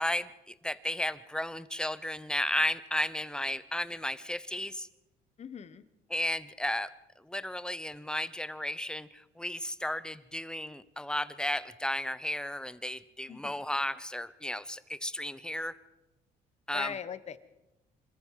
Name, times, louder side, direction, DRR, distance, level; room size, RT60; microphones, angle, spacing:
voice 1, 0.0-4.9 6.1-6.9 7.2-15.8 16.7-17.0, left 1 dB, 5° left, 16 dB, 0.9 m, -34 dB
voice 2, 5.4-5.8 13.3-13.5 16.7-17.4, left 7 dB, 40° left, 14 dB, 1.3 m, -40 dB
26.0 x 14.0 x 7.6 m, 0.96 s
cardioid pair, 110°, 17 cm